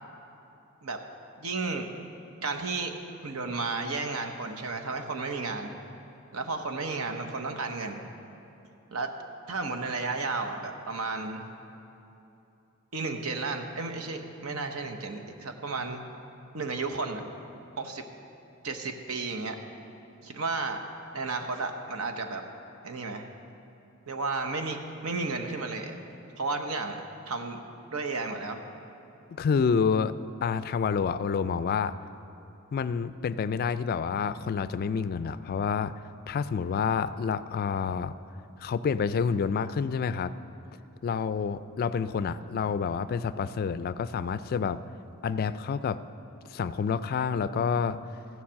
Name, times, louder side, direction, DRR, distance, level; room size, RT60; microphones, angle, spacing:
voice 1, 1.4-1.9 2.4-2.9 3.2-5.7 6.3-8.0 8.9-9.1 9.5-11.5 12.9-16.0 16.5-17.2 17.8-18.0 18.6-19.6 20.2-20.8 21.1-22.4 22.8-23.3 24.1-25.9 26.4-27.6 27.9-28.6, right 3 dB, 85° right, 5 dB, 0.9 m, -33 dB
voice 2, 29.4-30.1 30.4-31.9 32.7-35.9 36.3-38.1 38.6-40.3 41.0-44.8 45.2-46.0 46.5-48.0, left 6 dB, 45° left, 14 dB, 0.3 m, -28 dB
15.0 x 7.2 x 6.3 m, 2.9 s
head